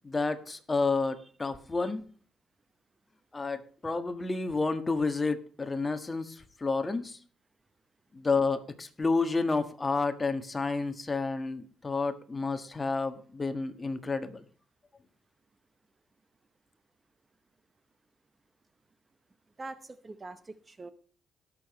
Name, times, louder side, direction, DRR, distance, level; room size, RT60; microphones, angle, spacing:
voice 1, 0.0-2.0 3.3-7.2 8.1-14.4, left 3 dB, 25° left, 9 dB, 1.5 m, -30 dB
voice 2, 19.6-20.9, right 3 dB, 25° right, 13 dB, 0.8 m, -44 dB
18.0 x 6.9 x 3.1 m, 0.43 s
cardioid pair, 90°, 0 cm